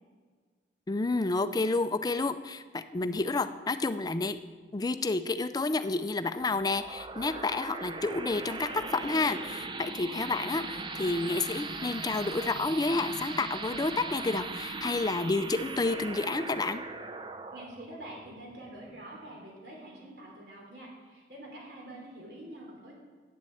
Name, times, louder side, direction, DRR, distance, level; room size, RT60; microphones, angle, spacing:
voice 1, 0.9-4.4 4.7-16.8, left 3 dB, 20° left, 10 dB, 0.4 m, -30 dB
sound 1, 6.4-19.5, right 3 dB, 25° right, 0.6 m, -39 dB
voice 2, 17.5-22.9, right 1 dB, 70° right, -1 dB, 3.2 m, -46 dB
9.4 x 7.3 x 7.8 m, 1.5 s
head